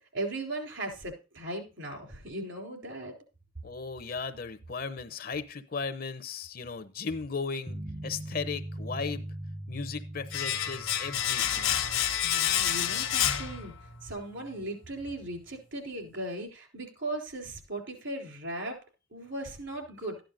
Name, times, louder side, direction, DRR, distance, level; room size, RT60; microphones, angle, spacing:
voice 1, 0.1-3.1 12.2-13.7 14.0-18.8 19.1-20.2, right 1 dB, 70° right, 2 dB, 3.6 m, -37 dB
voice 2, 3.6-9.3 9.7-11.7, left 5 dB, 45° left, 13 dB, 0.7 m, -36 dB
sound 1, 7.7-11.9, right 1 dB, 10° right, 0.5 m, -40 dB
Domestic sounds home sounds, 10.3-14.1 14.4-14.5, left 10 dB, 80° left, 1.2 m, -29 dB
13.5 x 10.5 x 2.5 m, 0.30 s
head